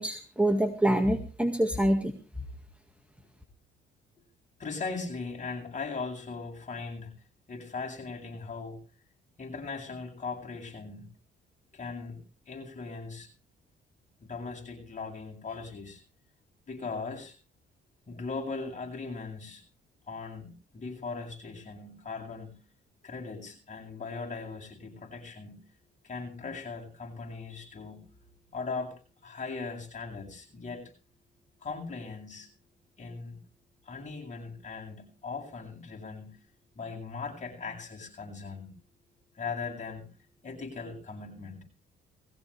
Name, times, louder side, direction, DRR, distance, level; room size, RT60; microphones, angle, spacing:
voice 1, 0.0-2.2, right 1 dB, 5° right, 5 dB, 1.9 m, -26 dB
voice 2, 4.6-7.2 7.5-8.8 9.4-11.1 11.7-13.3 14.2-16.0 16.7-17.3 18.1-19.6 20.1-22.6 23.0-25.7 26.0-28.1 28.5-29.0 29.2-30.9 31.6-32.5 33.0-33.4 33.8-36.4 36.7-38.8 39.3-40.1 40.4-41.6, left 4 dB, 40° left, 0 dB, 7.8 m, -39 dB
20.5 x 16.0 x 3.4 m, 0.35 s
cardioid pair, 90°, 20 cm